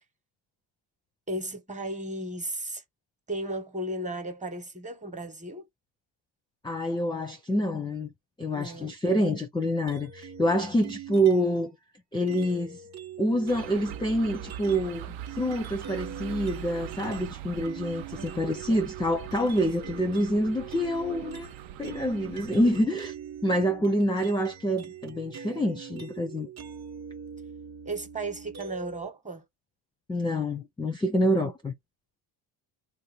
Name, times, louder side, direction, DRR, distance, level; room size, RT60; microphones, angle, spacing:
voice 1, 1.3-2.8 3.3-5.7 8.5-8.9 18.2-18.8 19.8-20.0 22.6-22.8 27.8-29.4, right 1 dB, 15° right, 1.1 m, -35 dB
voice 2, 6.6-8.1 8.4-11.7 12.1-12.8 13.2-21.5 21.8-23.1 23.4-26.5 30.1-31.7, equal, 10° left, 0.5 m, -27 dB
sound 1, 9.9-11.6 12.3-17.3 17.6-29.1, right 7 dB, 35° right, 0.8 m, -43 dB
sound 2, 13.5-22.8, right 12 dB, 75° right, 0.6 m, -42 dB
2.9 x 2.3 x 3.4 m
cardioid pair, 85°, 47 cm